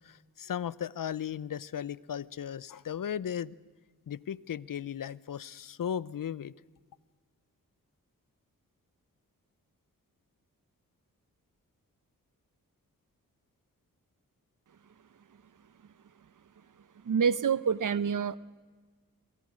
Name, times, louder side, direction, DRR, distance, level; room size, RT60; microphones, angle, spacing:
voice 1, 0.0-3.5 4.1-6.5, left 9 dB, 65° left, 0.8 m, -36 dB
voice 2, 17.0-18.4, right 6 dB, 60° right, 0.9 m, -27 dB
27.0 x 25.0 x 6.4 m
cardioid pair, 55°, 35 cm